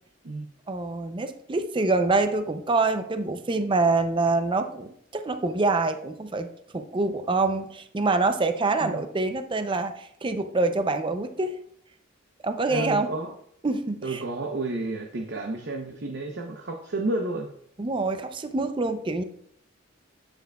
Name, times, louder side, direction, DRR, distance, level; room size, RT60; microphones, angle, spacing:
voice 1, 0.7-11.6 12.4-13.1 13.6-14.2 17.8-19.2, right 3 dB, 25° right, 8 dB, 0.5 m, -26 dB
voice 2, 12.7-13.3 14.0-17.5, right 2 dB, 60° right, 2 dB, 0.8 m, -31 dB
9.0 x 7.7 x 2.3 m, 0.70 s
head